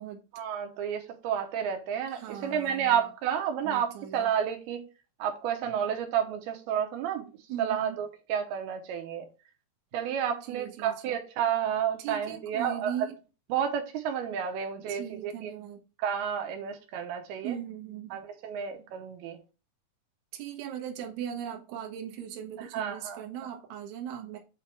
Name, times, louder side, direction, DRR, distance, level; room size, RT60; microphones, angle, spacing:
voice 1, 0.3-4.9 5.2-7.3 7.6-9.3 9.9-12.9 13.5-15.5 16.0-17.6 18.1-19.4 22.7-23.2, right 8 dB, 85° right, 2.8 m, -31 dB
voice 2, 2.1-3.1 3.6-4.3 7.5-8.0 10.4-11.2 12.0-13.2 14.8-15.8 17.4-18.2 20.3-24.4, right 9 dB, 60° right, 2.1 m, -39 dB
8.5 x 3.3 x 4.5 m
omnidirectional pair, 4.5 m